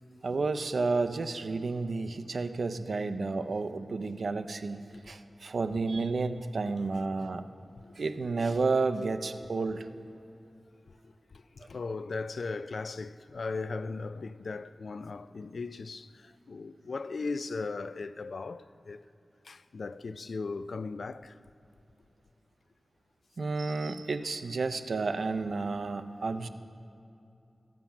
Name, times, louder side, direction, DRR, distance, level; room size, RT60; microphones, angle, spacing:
voice 1, 0.2-4.8 5.1-7.4 8.0-9.9 23.4-26.5, right 3 dB, 70° right, 0.5 m, -31 dB
voice 2, 11.0-19.0 19.4-21.3, left 4 dB, 75° left, 0.3 m, -38 dB
14.5 x 7.5 x 5.8 m
wide cardioid pair, 100°, 0 cm